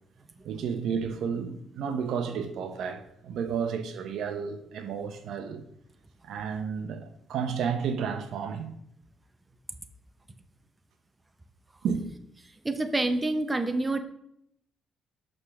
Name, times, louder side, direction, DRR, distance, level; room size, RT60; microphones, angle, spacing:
voice 1, 0.4-5.6 6.2-8.7 11.8-12.0, right 6 dB, 75° right, 0.7 m, -32 dB
voice 2, 12.6-14.0, right 2 dB, 20° right, 0.6 m, -27 dB
6.7 x 3.7 x 6.1 m
cardioid pair, 90°, 0 cm